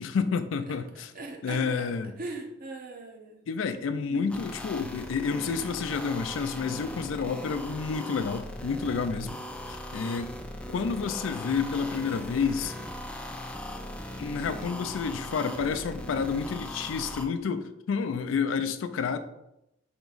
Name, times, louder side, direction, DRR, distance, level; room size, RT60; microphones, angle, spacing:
voice 1, 0.0-1.1 1.4-2.1 3.5-9.4 9.7-10.4 10.7-12.7 14.2-19.2, left 5 dB, 80° left, 9 dB, 0.4 m, -30 dB
voice 2, 0.9-1.8 2.2-3.4 4.1-4.4, right 3 dB, 50° right, 2 dB, 0.7 m, -40 dB
sound 1, 4.3-17.3, left 1 dB, 5° left, 0.3 m, -39 dB
3.4 x 2.9 x 3.9 m, 0.85 s
head